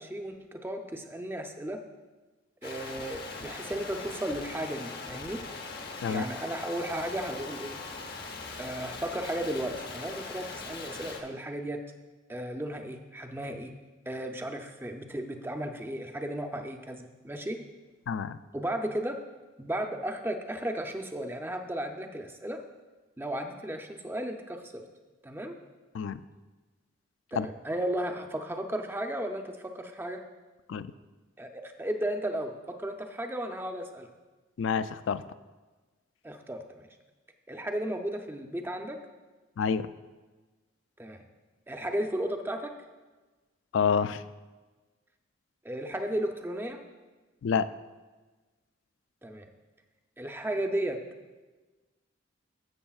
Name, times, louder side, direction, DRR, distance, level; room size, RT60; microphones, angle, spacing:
voice 1, 0.0-1.8 2.6-5.4 6.1-7.8 8.6-11.8 12.3-13.7 14.1-17.6 18.5-19.2 19.6-22.6 23.2-24.8 25.2-25.6 27.3-30.2 31.4-34.1 36.2-36.9 37.5-39.0 41.0-41.2 41.7-42.7 45.6-46.8 49.2-49.5 50.2-51.0, right 1 dB, 10° right, 5 dB, 0.5 m, -34 dB
sound 1, 2.6-11.2, left 3 dB, 50° left, 0.9 m, -41 dB
voice 2, 18.1-18.4 25.9-26.2 27.3-27.5 30.7-30.9 34.6-35.2 39.6-39.9 43.7-44.2 47.4-47.7, left 6 dB, 70° left, 13 dB, 0.3 m, -28 dB
13.0 x 7.5 x 2.4 m, 1.2 s
head